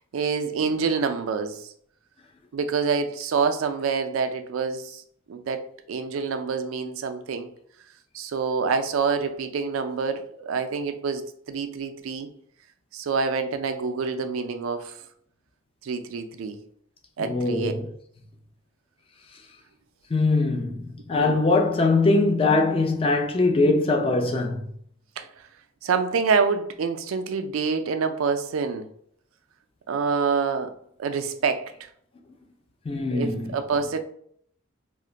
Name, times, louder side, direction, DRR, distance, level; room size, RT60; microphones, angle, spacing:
voice 1, 0.1-1.7 2.5-5.0 5.3-5.6 5.9-7.5 8.1-12.3 12.9-15.0 15.8-16.6 17.2-17.7 21.1-21.4 25.2-25.3 25.8-28.9 29.9-30.7 31.0-31.7 33.1-34.0, right 5 dB, 75° right, 0.4 m, -26 dB
voice 2, 17.2-17.9 20.1-24.6 32.9-33.5, left 3 dB, 25° left, 0.4 m, -22 dB
2.4 x 2.1 x 3.8 m
head